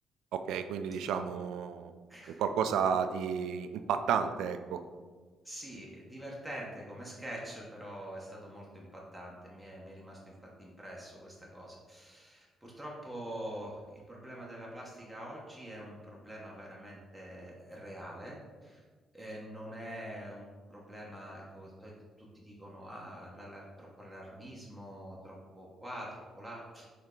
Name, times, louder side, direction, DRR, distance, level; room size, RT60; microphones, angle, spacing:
voice 1, 0.3-1.9 2.4-4.8, right 7 dB, 85° right, 9 dB, 0.3 m, -32 dB
voice 2, 2.1-2.4 5.4-10.2 10.6-18.4 18.6-18.8 19.1-21.9 22.2-26.9, equal, ahead, -5 dB, 1.0 m, -45 dB
4.3 x 3.2 x 3.8 m, 1.4 s
cardioid pair, 90°, 0 cm